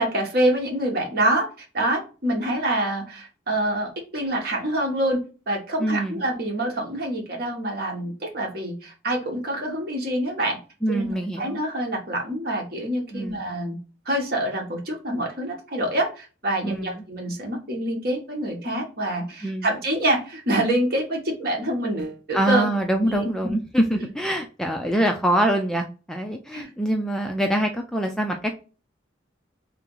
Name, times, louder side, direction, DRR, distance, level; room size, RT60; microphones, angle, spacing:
voice 1, 0.0-5.2 5.5-10.6 10.9-13.8 14.0-22.7 23.0-23.3 26.5-26.7, right 1 dB, 55° right, 1 dB, 1.3 m, -26 dB
voice 2, 5.8-6.2 10.8-11.6 13.1-13.4 16.6-17.0 19.4-19.7 22.3-28.5, right 1 dB, 5° left, 3 dB, 0.3 m, -24 dB
3.4 x 2.9 x 3.7 m, 0.34 s
head